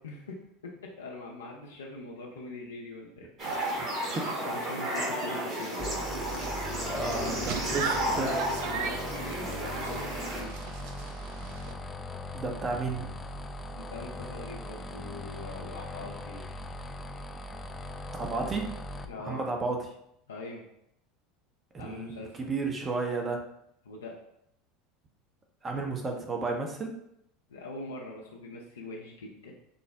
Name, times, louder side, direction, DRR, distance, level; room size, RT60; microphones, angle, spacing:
voice 1, 0.0-3.6 3.9-6.0 7.1-7.3 7.5-10.8 13.7-16.5 19.1-19.5 20.3-20.6 21.8-22.5 23.8-24.2 27.5-29.5, left 2 dB, 85° left, -2 dB, 0.5 m, -43 dB
sound 1, 3.4-10.4, right 1 dB, 40° right, 1.3 m, -33 dB
sound 2, 5.8-19.1, left 1 dB, 20° left, 0.3 m, -40 dB
voice 2, 6.9-7.9 8.2-8.4 12.3-13.2 18.1-18.7 19.2-19.8 21.7-23.4 25.6-26.9, right 3 dB, 25° right, 2 dB, 0.6 m, -32 dB
sound 3, 6.9-11.7, right 6 dB, 65° right, 0.4 m, -38 dB
3.8 x 2.0 x 3.4 m, 0.76 s
hypercardioid pair, 80°, 0 cm